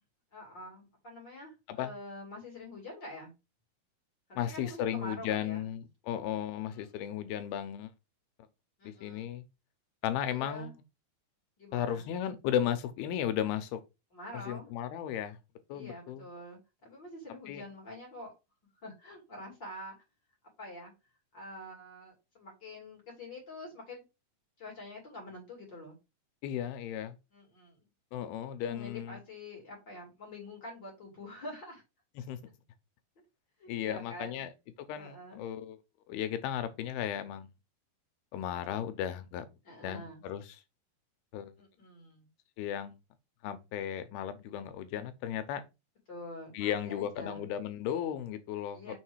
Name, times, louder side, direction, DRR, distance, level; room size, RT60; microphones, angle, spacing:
voice 1, 0.3-3.3 4.3-5.6 6.7-6.8 8.8-9.3 10.3-10.7 11.6-12.1 14.1-14.7 15.7-18.3 18.8-19.9 20.6-20.9 21.3-24.0 24.6-26.0 27.3-27.8 28.6-31.8 33.2-33.3 33.6-34.4 34.9-35.5 39.6-40.2 41.6-42.3 46.1-47.5 48.7-48.9, left 1 dB, 35° left, 2.5 m, -46 dB
voice 2, 4.4-7.9 8.8-9.4 10.0-10.7 11.7-13.8 14.3-15.4 15.7-16.2 17.5-17.6 26.4-27.2 28.1-29.2 32.2-32.4 33.7-34.5 34.8-35.8 36.1-37.5 38.3-39.5 39.8-40.6 41.3-41.5 42.6-43.0 43.4-45.6 46.5-48.9, left 10 dB, 85° left, 2.6 m, -35 dB
6.4 x 3.2 x 4.6 m
omnidirectional pair, 4.4 m